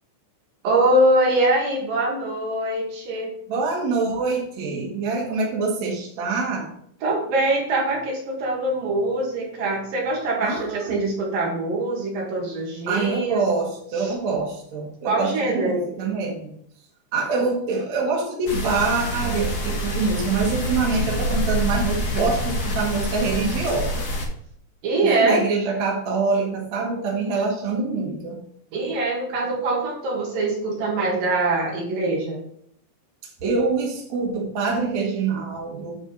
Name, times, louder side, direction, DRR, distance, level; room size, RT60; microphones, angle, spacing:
voice 1, 0.6-3.3 7.0-13.4 14.0-14.1 15.0-15.9 24.8-25.4 28.7-32.4, right 2 dB, 75° right, -2 dB, 3.8 m, -23 dB
voice 2, 3.5-6.7 10.4-11.1 12.9-16.5 17.1-24.1 25.0-28.4 33.4-36.0, right 4 dB, 55° right, -2 dB, 3.0 m, -25 dB
sound 1, 18.5-24.3, equal, 45° left, 1.2 m, -26 dB
9.5 x 5.0 x 5.3 m, 0.66 s
omnidirectional pair, 4.0 m